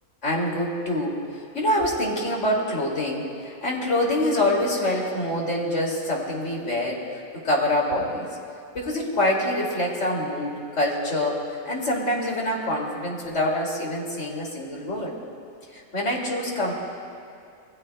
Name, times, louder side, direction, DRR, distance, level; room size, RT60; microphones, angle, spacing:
voice 1, 0.2-1.2 1.5-8.3 8.7-15.1 15.7-16.7, left 1 dB, 55° left, -2 dB, 2.9 m, -25 dB
27.0 x 20.5 x 2.2 m, 2.5 s
omnidirectional pair, 1.5 m